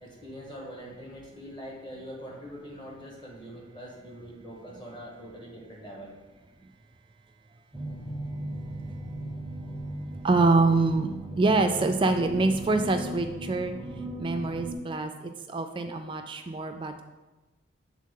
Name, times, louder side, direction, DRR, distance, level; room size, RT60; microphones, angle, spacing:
voice 1, 0.0-6.1, equal, 20° left, -3 dB, 1.2 m, -43 dB
sound 1, 7.7-14.7, right 1 dB, ahead, 0.7 m, -37 dB
voice 2, 10.2-13.7 14.2-17.0, right 3 dB, 25° right, 6 dB, 0.3 m, -25 dB
7.4 x 3.5 x 3.7 m, 1.1 s
head